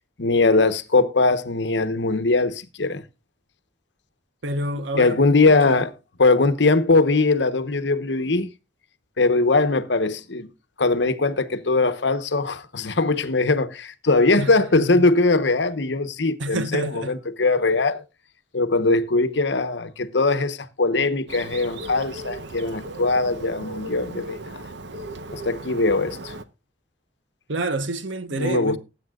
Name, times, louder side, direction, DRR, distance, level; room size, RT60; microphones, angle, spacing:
voice 1, 0.2-3.0 4.9-5.9 6.2-8.5 9.2-10.5 10.8-18.0 18.5-24.6 25.3-26.3 28.3-28.8, left 3 dB, 65° left, 1.0 m, -21 dB
voice 2, 4.4-5.8 14.4-15.1 16.4-17.1 27.5-28.8, right 2 dB, 85° right, 1.1 m, -28 dB
Bird, 21.3-26.4, right 2 dB, 65° right, 0.9 m, -37 dB
19.5 x 8.5 x 2.4 m
head